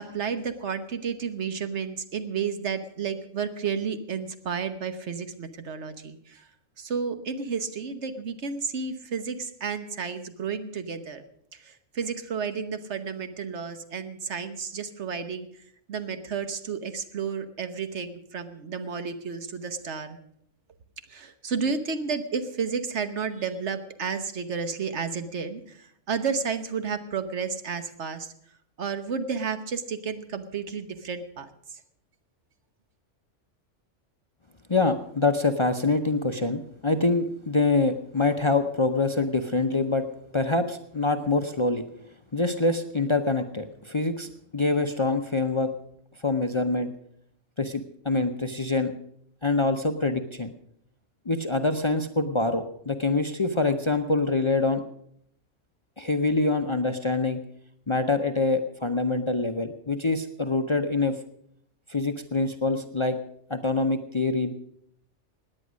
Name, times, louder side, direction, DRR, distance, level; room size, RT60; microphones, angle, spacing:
voice 1, 0.0-6.5 6.8-11.2 11.6-15.5 15.9-20.2 21.1-28.3 28.8-31.5, right 6 dB, 65° right, 9 dB, 1.3 m, -32 dB
voice 2, 34.7-40.1 40.3-41.8 42.3-45.7 46.2-46.9 47.6-48.9 49.4-50.5 51.3-54.8 56.0-57.4 57.9-61.2 61.9-63.2 63.5-64.5, left 3 dB, 30° left, 8 dB, 0.7 m, -25 dB
17.5 x 9.8 x 6.2 m, 0.71 s
omnidirectional pair, 1.3 m